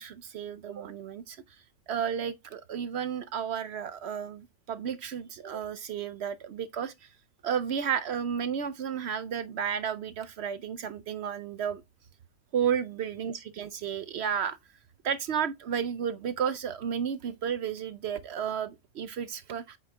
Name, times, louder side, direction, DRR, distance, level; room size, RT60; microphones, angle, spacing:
voice 1, 0.0-1.4 1.9-7.1 7.4-11.8 12.5-14.6 15.0-19.8, right 8 dB, 65° right, 0.7 m, -32 dB
8.3 x 3.8 x 3.5 m
omnidirectional pair, 1.4 m